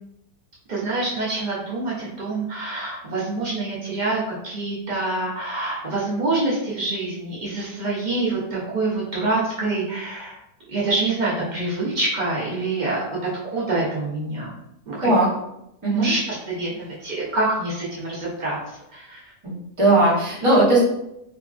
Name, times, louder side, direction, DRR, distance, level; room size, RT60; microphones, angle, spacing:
voice 1, 0.7-10.4 10.7-13.0 13.4-14.5 14.9-15.1 15.9-19.3, right 2 dB, 85° right, -6 dB, 0.4 m, -26 dB
voice 2, 19.8-20.8, right 2 dB, 30° right, -6 dB, 0.6 m, -17 dB
2.7 x 2.4 x 2.4 m, 0.82 s
omnidirectional pair, 1.6 m